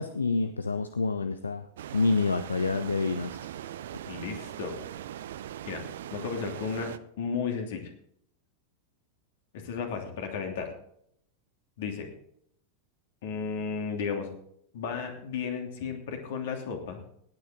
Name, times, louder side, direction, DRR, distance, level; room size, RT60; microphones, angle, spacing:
voice 1, 0.0-1.7 1.9-3.5, left 3 dB, 75° left, 11 dB, 0.6 m, -28 dB
sound 1, 1.8-7.0, right 11 dB, 60° right, 0.6 m, -40 dB
voice 2, 4.1-4.8 5.6-5.8 6.1-6.9 7.2-7.8 9.5-10.7 11.8-12.1 13.2-14.3 14.7-17.0, left 6 dB, 55° left, 3 dB, 2.9 m, -33 dB
18.0 x 9.2 x 3.8 m, 0.69 s
figure-of-eight pair, 90°, 0 cm